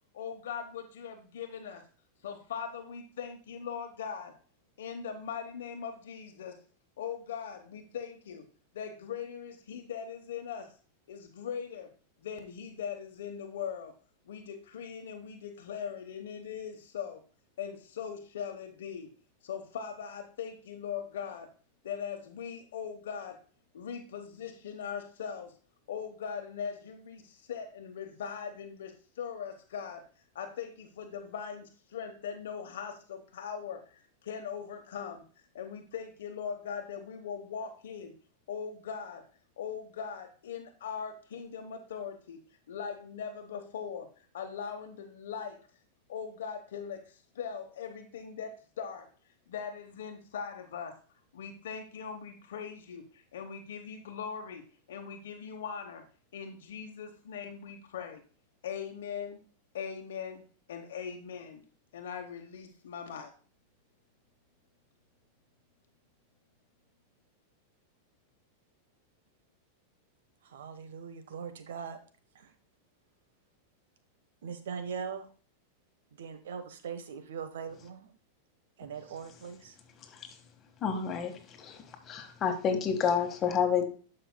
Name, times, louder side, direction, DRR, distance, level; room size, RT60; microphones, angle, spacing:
voice 1, 0.1-1.8 2.2-4.3 4.8-6.6 7.0-8.5 8.7-10.7 11.1-11.9 12.2-13.9 14.3-17.2 17.6-19.1 19.4-21.5 21.8-23.4 23.7-25.5 25.9-30.0 30.3-35.2 35.5-38.1 38.5-39.2 39.6-42.4 42.7-44.1 44.3-45.6 46.1-49.1 49.5-50.9 51.3-54.6 54.9-56.0 56.3-58.2 58.6-59.4 59.7-60.4 60.7-61.6 61.9-63.3, left 7 dB, 80° left, 4 dB, 1.0 m, -40 dB
voice 2, 70.4-72.0 72.3-72.5 74.4-75.3 76.1-78.1 78.8-79.8, right 6 dB, 80° right, 9 dB, 1.1 m, -41 dB
voice 3, 80.8-83.8, left 7 dB, 30° left, 5 dB, 1.5 m, -29 dB
12.0 x 5.6 x 2.2 m, 0.39 s
hypercardioid pair, 120°, 0 cm